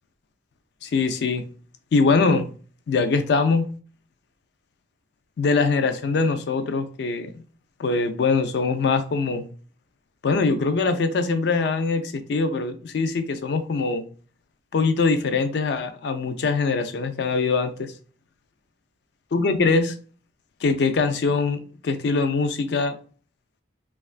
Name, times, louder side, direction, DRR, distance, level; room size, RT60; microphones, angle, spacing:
voice 1, 0.8-1.5 1.9-2.5 2.9-3.7 5.4-7.3 7.8-9.4 10.2-14.0 14.7-17.9 19.3-20.0 20.6-23.0, left 4 dB, 70° left, 0.4 m, -22 dB
3.0 x 2.3 x 2.4 m
head